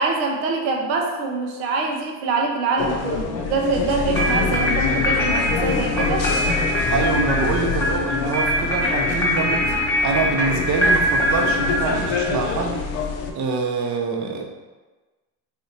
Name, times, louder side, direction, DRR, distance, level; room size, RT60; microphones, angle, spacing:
voice 1, 0.0-6.3, right 3 dB, 90° right, 1 dB, 0.7 m, -24 dB
sound 1, 2.8-13.3, left 5 dB, 65° left, 0.6 m, -26 dB
sound 2, 4.1-12.4, equal, 5° left, 1.2 m, -23 dB
voice 2, 6.9-12.9 13.3-14.5, right 4 dB, 40° right, 2 dB, 0.6 m, -25 dB
3.4 x 2.7 x 2.7 m, 1.2 s
supercardioid pair, 75°, 44 cm